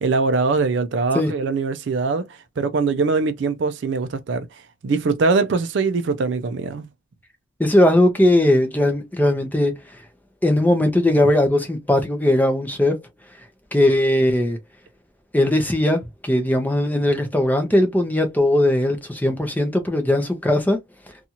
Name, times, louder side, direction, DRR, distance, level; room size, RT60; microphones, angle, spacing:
voice 1, 0.0-4.5 4.8-6.9, right 4 dB, 60° right, 0.4 m, -22 dB
voice 2, 7.6-9.7 10.4-12.9 13.7-14.6 15.3-20.8, left 1 dB, 10° left, 0.6 m, -19 dB
2.7 x 2.4 x 2.8 m
head